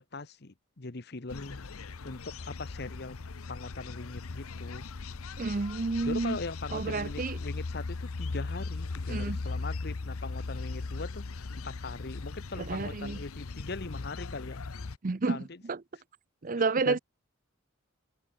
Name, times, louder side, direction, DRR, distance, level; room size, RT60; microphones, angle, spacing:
voice 1, 0.0-1.6 2.0-3.2 3.5-4.9 6.0-14.6 15.3-15.6 16.8-17.0, left 3 dB, 50° left, 1.1 m, -40 dB
sound 1, 1.3-15.0, left 3 dB, 90° left, 0.8 m, -38 dB
voice 2, 5.4-6.4 6.7-7.4 9.1-9.4 12.6-13.2 15.0-15.8 16.4-17.0, right 3 dB, 40° right, 0.6 m, -30 dB
head